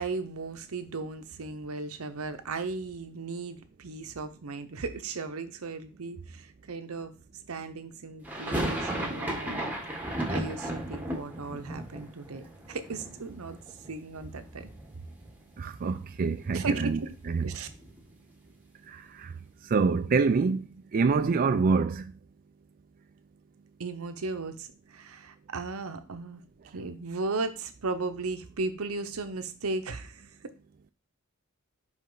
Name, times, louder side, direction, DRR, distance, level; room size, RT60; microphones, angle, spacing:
voice 1, 0.0-7.1 7.5-9.7 10.3-13.6 13.9-14.7 16.5-17.1 17.4-17.7 23.8-30.5, right 3 dB, 90° right, 0.8 m, -36 dB
sound 1, 8.2-14.2 14.4-15.3 15.6-15.7 15.9-18.1, right 1 dB, 10° right, 1.1 m, -35 dB
voice 2, 15.6-17.0 17.3-17.5 18.9-19.3 19.7-20.6 20.9-22.1, right 4 dB, 40° right, 0.3 m, -26 dB
5.4 x 5.3 x 3.9 m
head